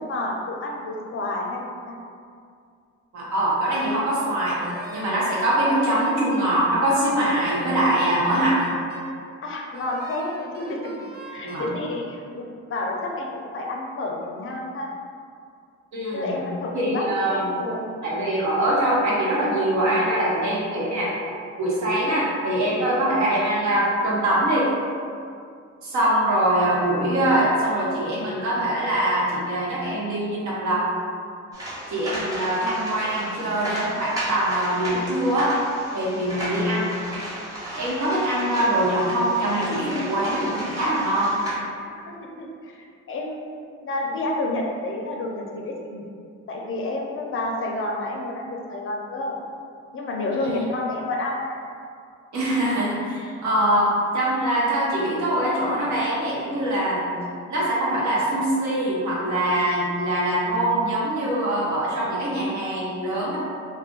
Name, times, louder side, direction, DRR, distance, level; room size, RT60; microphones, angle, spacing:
voice 1, 0.0-2.0 9.4-10.9 11.2-14.9 16.1-17.9 42.1-43.5 43.8-46.1 46.5-49.4 49.9-51.6, left 2 dB, 45° left, 0 dB, 0.5 m, -30 dB
voice 2, 3.1-4.6 4.9-8.6 11.4-11.7 15.9-16.4 16.7-17.5 18.0-21.1 21.6-24.7 25.8-30.8 31.9-35.5 35.9-36.9 37.8-41.4 50.3-50.6 52.3-57.1 57.5-63.4, right 1 dB, 70° right, -6 dB, 0.9 m, -23 dB
Wind instrument woodwind instrument, 4.6-6.6 7.1-9.2 9.7-11.7, right 3 dB, 35° right, 0.4 m, -41 dB
sound 1, 31.5-41.5, right 1 dB, 10° right, 1.1 m, -34 dB
2.4 x 2.1 x 3.6 m, 2.3 s
cardioid pair, 90°, 30 cm